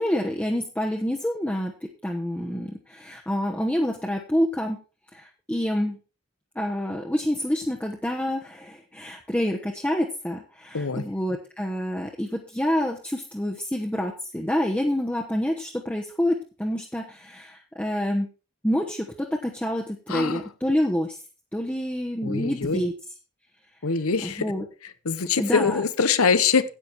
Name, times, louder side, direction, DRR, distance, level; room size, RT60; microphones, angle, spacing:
voice 1, 0.0-4.8 5.1-6.0 6.5-18.3 18.6-21.2 21.5-22.9 24.2-24.6 25.4-25.8, equal, 5° left, 0 dB, 1.0 m, -27 dB
voice 2, 20.1-20.4 22.2-22.8 23.8-24.4 25.0-26.6, left 5 dB, 90° left, 14 dB, 1.0 m, -23 dB
10.0 x 8.9 x 4.6 m, 0.34 s
head